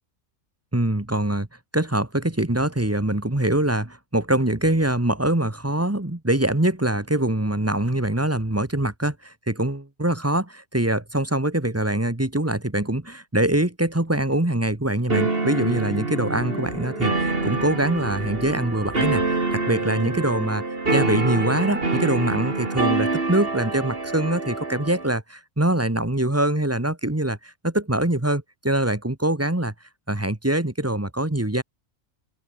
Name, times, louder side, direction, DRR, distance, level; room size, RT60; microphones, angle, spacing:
voice 1, 0.7-1.5 1.7-20.6 20.9-29.7 30.1-31.6, right 1 dB, 10° right, 1.7 m, -24 dB
sound 1, 13.9-14.0 14.3-14.6 14.9-15.4 15.6-20.5, equal, 10° left, 5.5 m, -40 dB
sound 2, 15.1-25.2, right 3 dB, 45° right, 3.0 m, -26 dB
open air
omnidirectional pair, 1.4 m